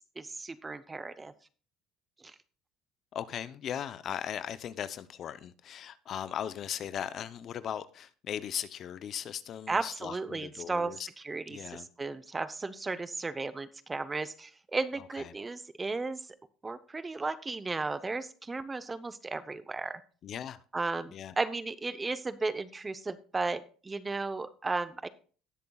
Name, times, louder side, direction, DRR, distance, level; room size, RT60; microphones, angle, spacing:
voice 1, 0.2-1.3 2.2-2.3 9.7-10.9 11.2-16.3 16.6-20.0 20.7-25.1, right 3 dB, 20° right, 0.7 m, -35 dB
voice 2, 3.1-11.1 11.5-11.9 15.2-15.3 20.2-20.6 21.1-21.3, left 9 dB, 50° left, 0.6 m, -38 dB
18.0 x 6.8 x 2.3 m
supercardioid pair, 100°, 0 cm